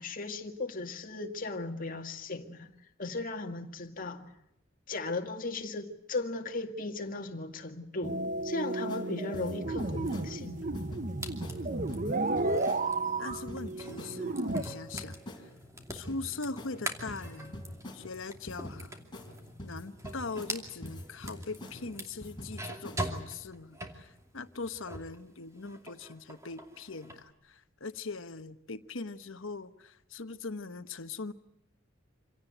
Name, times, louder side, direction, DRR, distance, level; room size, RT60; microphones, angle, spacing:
voice 1, 0.0-2.7 3.0-4.3 4.9-10.7, left 2 dB, 45° left, 2.0 m, -37 dB
sound 1, 8.0-14.6, right 2 dB, 40° right, 1.0 m, -33 dB
sound 2, 8.9-9.1 9.3-10.3 10.7-11.0 11.4-11.6 11.9-12.8 13.3-13.6 14.0-14.2 14.5-15.4 15.9-16.2 16.6-16.8 17.1-18.0 18.5-18.8 19.1-19.3 19.6-20.6 20.8-21.8 22.2-22.6 22.8-23.2, left 1 dB, 25° left, 4.2 m, -44 dB
sound 3, 10.0-25.2 25.5-27.2, right 1 dB, 15° right, 2.6 m, -44 dB
voice 2, 12.3-12.7 13.2-15.4 15.9-17.7 17.9-19.0 19.6-31.3, left 3 dB, 75° left, 1.2 m, -41 dB
26.5 x 17.5 x 9.1 m
head